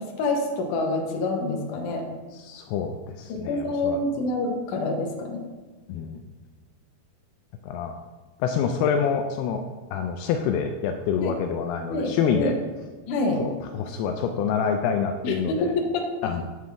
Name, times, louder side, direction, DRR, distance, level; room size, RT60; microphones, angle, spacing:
voice 1, 0.0-2.1 3.3-5.4 11.2-11.3 11.9-12.5 13.1-13.4 15.2-16.0, left 2 dB, 60° left, 1 dB, 2.4 m, -27 dB
voice 2, 2.3-4.2 5.9-6.2 7.6-7.9 8.4-9.6 9.9-12.6 13.3-15.7 16.2-16.4, left 7 dB, 85° left, 5 dB, 2.5 m, -27 dB
9.3 x 7.7 x 3.5 m, 1.3 s
omnidirectional pair, 4.7 m